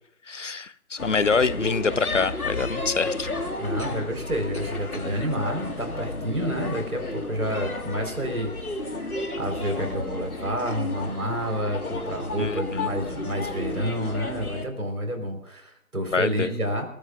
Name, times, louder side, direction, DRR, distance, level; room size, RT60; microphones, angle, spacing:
voice 1, 0.3-3.3 12.4-12.6 16.1-16.5, left 4 dB, 60° left, 17 dB, 0.8 m, -25 dB
sound 1, 1.0-14.7, left 2 dB, 80° left, 2.1 m, -32 dB
voice 2, 3.6-9.1 9.4-16.9, equal, 85° right, 4 dB, 4.8 m, -29 dB
28.0 x 13.5 x 2.6 m, 0.78 s
figure-of-eight pair, 160°, 43 cm